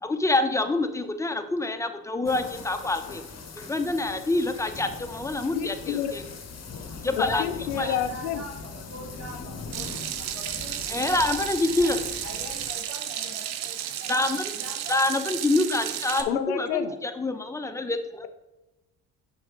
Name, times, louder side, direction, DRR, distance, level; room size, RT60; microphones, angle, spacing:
voice 1, 0.0-3.2 3.6-6.2 7.0-7.5 7.8-8.0 10.9-12.0 14.1-14.5 14.9-18.2, left 2 dB, 5° left, 8 dB, 0.8 m, -26 dB
sound 1, 2.2-12.7, left 4 dB, 35° left, 1.1 m, -41 dB
voice 2, 5.5-6.2 7.2-8.4 16.3-16.9, left 10 dB, 85° left, 12 dB, 0.6 m, -28 dB
voice 3, 7.7-9.9 10.2-11.2 11.8-11.9 12.2-14.3 14.5-14.9 15.2-15.4 16.8-16.9, right 1 dB, 35° right, -3 dB, 1.8 m, -43 dB
Water tap faucet / Sink (filling or washing), 9.7-16.2, right 11 dB, 70° right, 0.8 m, -33 dB
6.3 x 4.4 x 5.0 m, 1.0 s
hypercardioid pair, 50°, 45 cm